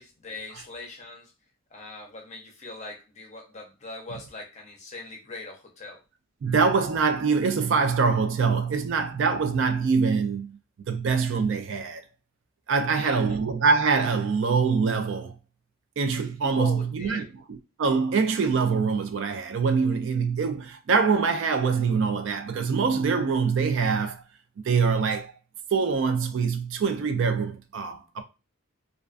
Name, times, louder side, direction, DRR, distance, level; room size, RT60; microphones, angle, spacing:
voice 1, 0.0-1.3 1.7-6.0 12.9-13.5 16.5-17.3, left 3 dB, 30° left, 0.6 m, -41 dB
voice 2, 6.4-10.6 10.9-12.0 12.7-15.4 16.0-24.2 24.6-25.3 25.7-28.2, right 5 dB, 60° right, 0.3 m, -24 dB
2.3 x 2.3 x 2.4 m
head